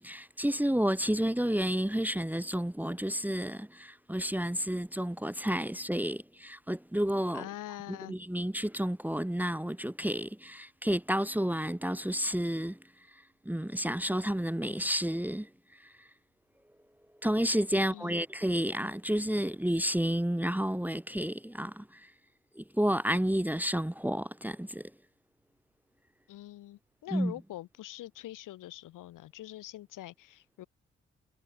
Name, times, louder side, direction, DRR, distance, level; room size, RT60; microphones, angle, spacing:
voice 1, 0.0-7.5 8.1-12.8 13.1-16.1 17.2-22.1 22.5-24.9 27.1-27.3, equal, 5° right, 1.4 m, -31 dB
voice 2, 7.3-8.2 17.8-18.2 26.3-30.7, left 15 dB, 80° left, 3.4 m, -44 dB
hypercardioid pair, 40°, 31 cm